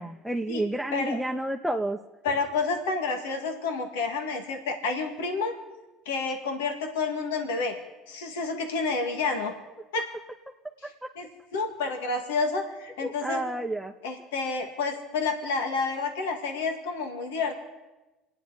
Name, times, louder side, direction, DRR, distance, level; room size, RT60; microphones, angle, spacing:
voice 1, 0.0-2.0 10.8-10.9 13.0-13.9, right 1 dB, 5° right, 2 dB, 1.0 m, -30 dB
voice 2, 2.2-5.5 6.1-7.8 8.1-9.5 9.9-10.1 11.2-13.4 14.0-17.5, left 4 dB, 90° left, 5 dB, 1.9 m, -29 dB
26.0 x 9.7 x 4.9 m, 1.1 s
supercardioid pair, 80°, 0 cm